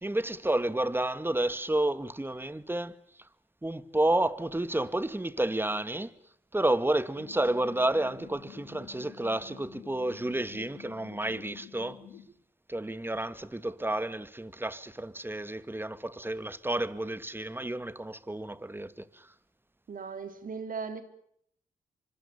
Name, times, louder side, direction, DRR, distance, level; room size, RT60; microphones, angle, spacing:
voice 1, 0.0-2.9 3.6-6.1 6.5-12.0 12.7-19.3, right 1 dB, 15° right, 2.1 m, -30 dB
sound 1, 7.1-12.3, left 8 dB, 85° left, 3.4 m, -49 dB
voice 2, 19.9-21.0, right 5 dB, 60° right, 4.0 m, -37 dB
26.0 x 25.0 x 7.1 m
supercardioid pair, 50°, 16 cm